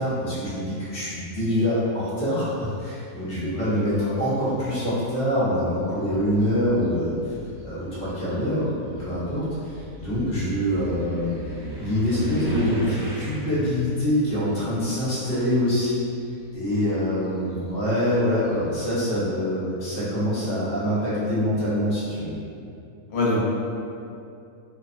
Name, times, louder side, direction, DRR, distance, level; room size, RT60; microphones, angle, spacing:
voice 1, 0.0-7.3 7.6-11.3 11.8-16.0 16.5-22.3, equal, 45° left, -10 dB, 0.8 m, -25 dB
voice 2, 3.5-4.2 23.1-23.4, left 2 dB, 70° left, -6 dB, 1.1 m, -26 dB
sound 1, 3.8-4.4 5.4-5.5 6.0-15.9 16.2-18.8, right 1 dB, 50° right, 0.6 m, -36 dB
2.7 x 2.1 x 2.4 m, 2.6 s
omnidirectional pair, 1.7 m